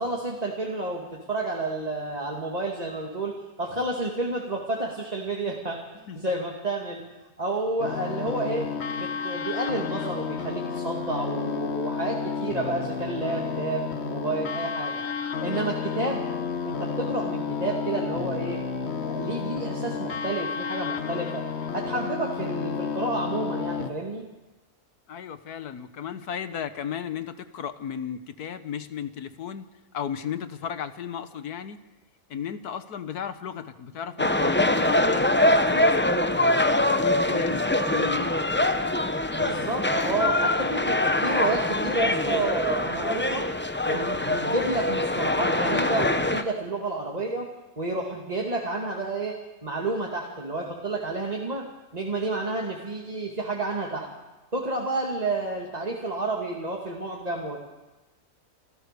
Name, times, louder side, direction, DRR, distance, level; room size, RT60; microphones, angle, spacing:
voice 1, 0.0-5.8 6.2-7.0 7.4-8.7 9.0-15.0 15.4-16.2 16.6-18.6 19.0-21.4 21.7-24.2 39.3-43.5 43.8-47.5 47.8-49.4 49.6-51.6 51.9-54.1 54.5-57.6, right 2 dB, 25° right, -1 dB, 2.2 m, -30 dB
sound 1, 7.8-23.9, left 6 dB, 45° left, 1.4 m, -31 dB
voice 2, 25.1-29.7 29.9-31.8 32.3-36.5 36.8-38.4, left 8 dB, 85° left, 11 dB, 1.6 m, -35 dB
sound 2, 34.2-46.4, left 1 dB, 15° left, 0.4 m, -24 dB
28.0 x 14.5 x 6.7 m, 1.1 s
omnidirectional pair, 1.6 m